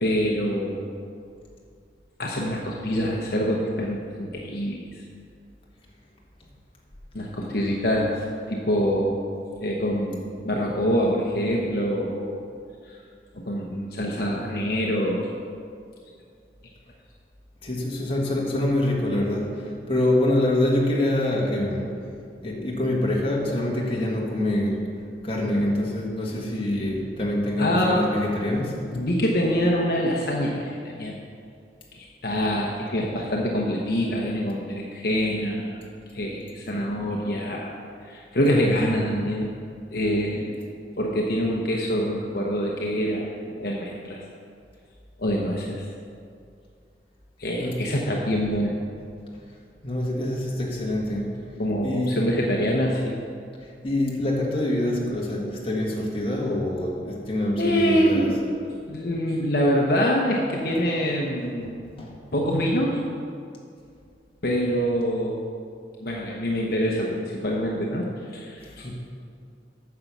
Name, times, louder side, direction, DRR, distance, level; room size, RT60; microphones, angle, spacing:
voice 1, 0.0-0.9 2.2-5.0 7.1-9.2 9.6-12.4 12.9-13.0 13.3-15.3 27.6-28.1 28.9-31.1 32.0-35.8 36.1-37.7 38.0-39.5 39.9-40.5 41.0-44.2 45.2-45.9 47.4-48.7 51.6-53.1 57.6-58.3 58.9-61.7 62.3-63.0 64.4-65.4 66.0-68.9, equal, 60° left, -2 dB, 0.9 m, -25 dB
voice 2, 17.6-21.9 22.4-24.9 25.2-28.8 47.6-47.8 49.3-49.4 49.8-51.4 51.8-52.3 53.8-58.4 61.6-62.2 68.8-68.9, left 1 dB, 30° left, -3 dB, 1.7 m, -25 dB
9.5 x 6.8 x 6.1 m, 2.3 s
head